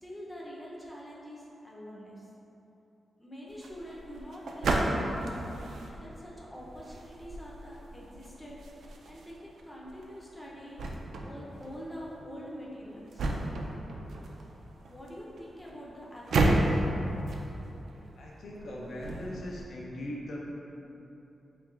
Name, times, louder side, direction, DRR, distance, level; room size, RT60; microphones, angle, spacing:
voice 1, 0.0-2.3 3.2-5.5 6.0-8.6 9.1-10.8 11.2-13.3 14.9-16.8, equal, 5° left, -5 dB, 0.5 m, -45 dB
sound 1, 3.5-19.7, right 2 dB, 80° right, 0.3 m, -34 dB
voice 2, 18.2-20.4, left 1 dB, 70° left, -4 dB, 0.5 m, -40 dB
4.5 x 3.0 x 2.4 m, 3.0 s
wide cardioid pair, 130°, 0 cm